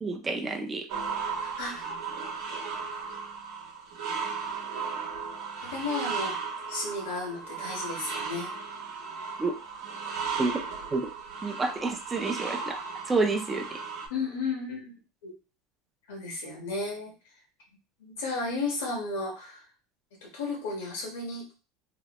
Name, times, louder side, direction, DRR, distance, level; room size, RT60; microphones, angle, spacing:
voice 1, 0.0-0.9 9.4-9.6 10.4-10.6 10.9-11.1 11.4-12.8 13.1-13.8, right 3 dB, 20° right, 5 dB, 0.4 m, -29 dB
sound 1, 0.9-14.1, right 5 dB, 75° right, 0.9 m, -36 dB
voice 2, 1.4-1.8 5.6-6.4 6.7-8.5 14.1-14.9 15.2-15.3 16.1-17.1 18.0-19.7 20.2-21.5, left 3 dB, 90° left, 1 dB, 1.2 m, -33 dB
2.9 x 2.1 x 2.9 m, 0.33 s
supercardioid pair, 120°, 0 cm